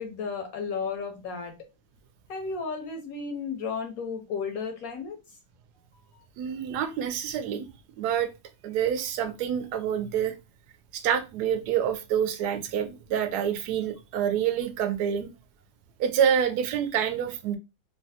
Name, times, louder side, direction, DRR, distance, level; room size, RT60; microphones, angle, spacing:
voice 1, 0.0-1.6 2.3-5.2 6.1-6.2, left 5 dB, 70° left, 0.9 m, -33 dB
voice 2, 6.4-7.7 8.0-8.3 8.6-10.3 10.9-15.3 16.0-17.6, right 8 dB, 70° right, 1.0 m, -27 dB
3.1 x 2.2 x 2.7 m
omnidirectional pair, 1.9 m